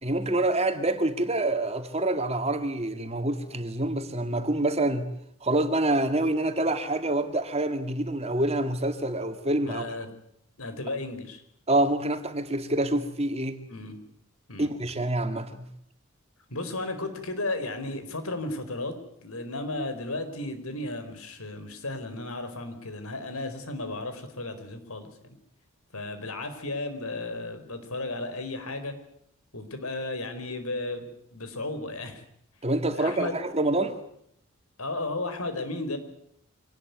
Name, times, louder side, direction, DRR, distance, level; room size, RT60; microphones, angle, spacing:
voice 1, 0.0-5.1 5.4-9.9 11.7-13.6 14.6-15.7 32.6-33.9, right 1 dB, 30° right, 2.2 m, -26 dB
voice 2, 9.7-10.1 10.6-11.4 13.7-14.0 14.5-14.7 16.5-25.4 25.9-28.9 29.5-32.2 32.9-33.3 34.8-36.0, left 2 dB, 85° left, 4.7 m, -34 dB
25.0 x 19.5 x 9.6 m
head